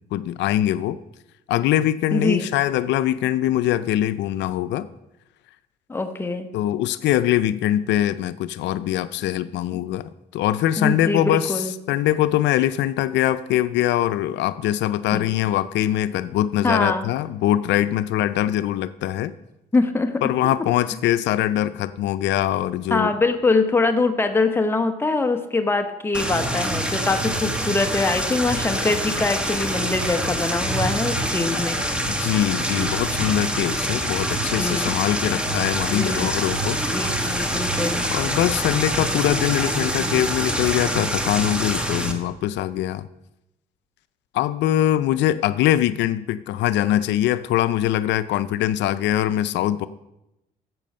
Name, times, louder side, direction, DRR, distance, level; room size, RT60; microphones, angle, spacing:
voice 1, 0.1-1.0 1.5-4.9 6.5-19.3 20.2-23.1 31.4-31.6 32.1-36.9 38.1-43.1 44.3-49.9, left 12 dB, 80° left, 14 dB, 0.5 m, -22 dB
voice 2, 2.1-2.5 5.9-6.5 10.8-11.7 15.1-15.3 16.6-17.1 19.7-20.2 22.9-31.8 34.6-35.0 35.9-36.3 36.9-38.1, left 3 dB, 15° left, 6 dB, 0.8 m, -23 dB
sound 1, 26.1-42.1, right 1 dB, 5° right, 1.3 m, -25 dB
12.5 x 7.7 x 5.4 m, 0.92 s
cardioid pair, 105°, 18 cm